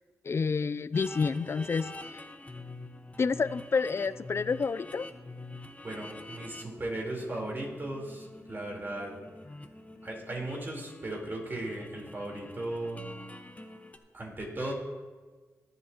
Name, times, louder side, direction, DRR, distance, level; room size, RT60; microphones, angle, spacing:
voice 1, 0.2-1.9 3.2-5.1, left 5 dB, 45° left, 15 dB, 0.4 m, -29 dB
sound 1, 0.9-14.0, left 2 dB, 25° left, 1.2 m, -46 dB
voice 2, 5.8-9.1 10.0-13.1 14.1-14.7, right 1 dB, 35° right, -1 dB, 3.9 m, -37 dB
24.0 x 8.1 x 3.0 m, 1.4 s
cardioid pair, 65°, 6 cm